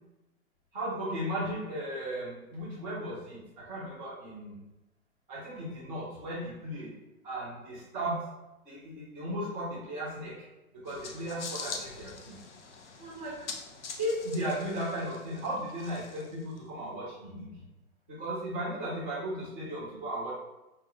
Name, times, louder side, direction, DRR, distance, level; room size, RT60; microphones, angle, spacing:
voice 1, 0.7-4.6 5.3-6.9 7.2-8.3 8.6-10.5 10.7-12.4 13.0-13.5 14.0-17.5 18.1-20.3, right 1 dB, 5° left, -19 dB, 0.3 m, -36 dB
sound 1, 10.9-16.6, left 5 dB, 55° left, 0.7 m, -44 dB
5.1 x 2.2 x 2.7 m, 0.98 s
figure-of-eight pair, 120°, 44 cm